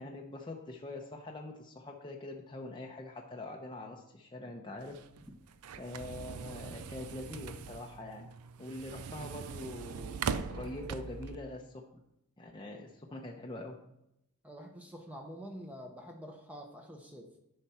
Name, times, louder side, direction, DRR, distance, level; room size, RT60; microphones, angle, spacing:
voice 1, 0.0-5.0 5.8-8.3 8.6-11.7 12.4-13.8, left 2 dB, 20° left, 0 dB, 0.7 m, -44 dB
sound 1, 4.8-11.4, right 6 dB, 85° right, 0.5 m, -41 dB
voice 2, 14.4-17.3, equal, 5° right, 2 dB, 0.8 m, -47 dB
10.5 x 5.8 x 4.3 m, 0.85 s
head